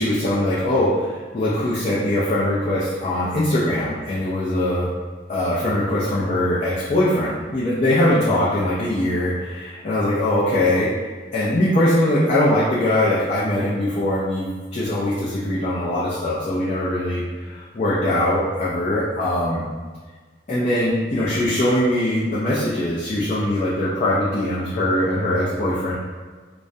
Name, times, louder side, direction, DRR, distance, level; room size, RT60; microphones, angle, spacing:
voice 1, 0.0-4.9 5.3-10.9 11.3-19.6 20.5-25.9, left 1 dB, 40° left, -8 dB, 0.4 m, -21 dB
2.3 x 2.0 x 2.6 m, 1.4 s
head